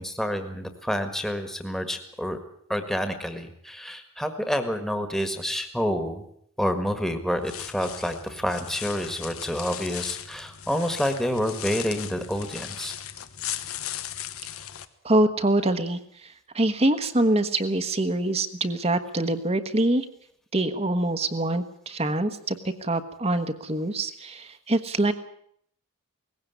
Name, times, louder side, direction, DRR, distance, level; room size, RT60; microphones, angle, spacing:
voice 1, 0.0-2.4 2.7-6.2 6.6-12.9, equal, ahead, 7 dB, 1.7 m, -28 dB
sound 1, 7.4-14.9, left 11 dB, 85° left, 1.3 m, -37 dB
voice 2, 15.0-20.1 20.5-25.1, right 1 dB, 30° right, 8 dB, 1.2 m, -25 dB
19.5 x 16.5 x 9.5 m, 0.67 s
head